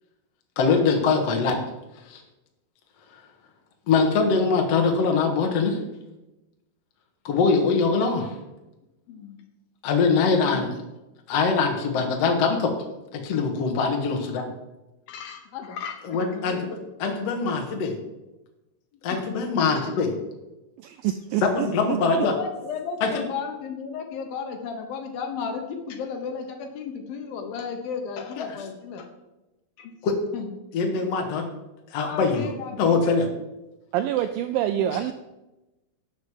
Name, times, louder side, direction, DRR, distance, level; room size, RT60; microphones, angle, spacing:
voice 1, 0.6-1.6 2.1-2.2 3.9-5.8 7.2-8.3 9.8-10.7 11.3-12.7 13.1-14.5 16.1-18.0 19.0-20.1 21.4-22.3 23.0-23.1 28.4-28.5 30.0-30.1 30.7-31.5 31.9-32.5 32.8-33.3, left 4 dB, 55° left, 2 dB, 2.0 m, -23 dB
voice 2, 9.1-9.4 15.1-16.8 19.1-19.2 19.8-19.9 22.2-29.1 29.8-30.0 30.3-30.5 32.0-33.0 34.7-35.0, left 6 dB, 70° left, 5 dB, 2.8 m, -34 dB
voice 3, 20.8-22.0 33.9-35.1, right 12 dB, 85° right, 9 dB, 2.0 m, -26 dB
12.0 x 6.6 x 7.3 m, 1.0 s
omnidirectional pair, 4.6 m